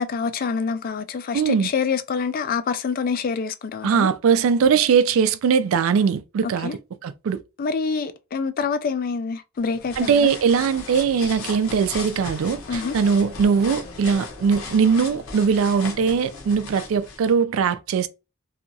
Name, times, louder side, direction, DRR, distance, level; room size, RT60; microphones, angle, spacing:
voice 1, 0.0-4.1 6.4-6.8 7.6-10.3 12.7-13.0, left 5 dB, 45° left, 0.3 m, -26 dB
voice 2, 1.3-1.7 3.8-7.4 10.0-18.1, right 6 dB, 65° right, 0.3 m, -20 dB
sound 1, 9.6-17.3, left 4 dB, 75° left, 0.8 m, -37 dB
2.7 x 2.3 x 2.6 m
head